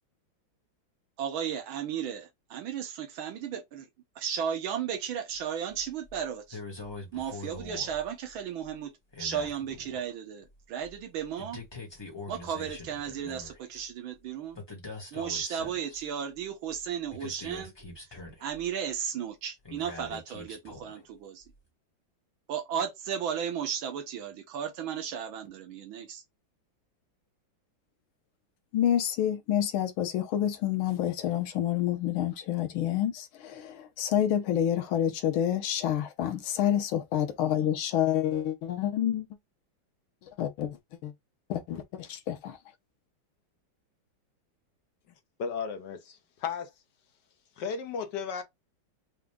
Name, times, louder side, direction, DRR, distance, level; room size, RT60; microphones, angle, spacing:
voice 1, 1.2-3.9 4.1-6.6 7.1-8.9 9.2-11.6 12.3-14.6 15.1-17.7 18.4-21.4 22.5-26.2, right 8 dB, 80° right, 1.7 m, -34 dB
sound 1, 5.7-6.2 6.5-8.3 8.6-8.7 9.1-10.1 10.5-13.9 14.6-16.1 16.4-16.5 16.7-19.0 19.6-21.1 21.4-21.6, left 2 dB, 15° left, 1.0 m, -44 dB
voice 2, 28.7-39.3 40.2-40.8 41.0-41.1 41.5-42.6, left 10 dB, 90° left, 1.6 m, -28 dB
voice 3, 45.4-46.0 46.4-46.7 47.6-48.4, left 6 dB, 65° left, 1.3 m, -33 dB
4.9 x 2.2 x 3.5 m
omnidirectional pair, 2.2 m